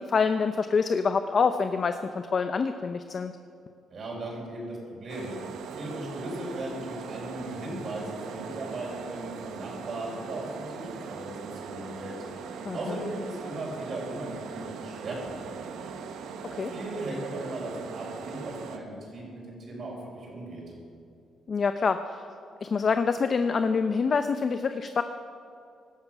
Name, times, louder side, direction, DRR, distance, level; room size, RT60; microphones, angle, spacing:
voice 1, 0.0-3.3 12.6-13.0 16.5-16.7 21.5-22.2 22.6-25.0, left 5 dB, 40° left, 9 dB, 0.6 m, -26 dB
voice 2, 3.9-5.3 5.7-16.0 16.6-20.6, right 1 dB, 50° right, -3 dB, 5.1 m, -37 dB
sound 1, 5.1-18.8, right 6 dB, 85° right, 1.2 m, -40 dB
17.5 x 12.5 x 6.0 m, 2.5 s
cardioid pair, 115°, 0 cm